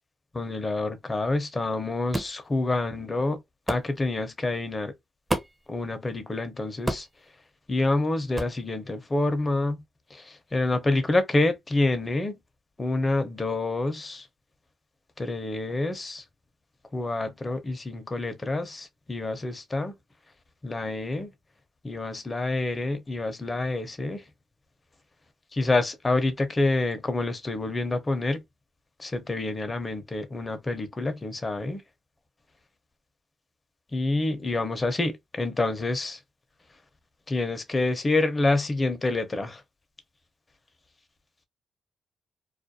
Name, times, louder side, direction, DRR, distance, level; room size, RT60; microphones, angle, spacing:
voice 1, 0.3-3.4 3.7-4.9 5.7-7.1 7.7-9.8 10.1-12.4 12.8-14.3 15.2-16.2 16.9-19.9 20.6-21.3 21.8-24.2 25.5-28.4 29.0-31.8 33.9-36.2 37.3-39.6, left 2 dB, 30° left, 0.7 m, -27 dB
sound 1, 2.1-2.4 3.7-3.9 5.3-5.7 6.9-7.2 8.3-8.6, right 1 dB, 15° right, 0.6 m, -29 dB
2.4 x 2.1 x 2.6 m
supercardioid pair, 60°, 0 cm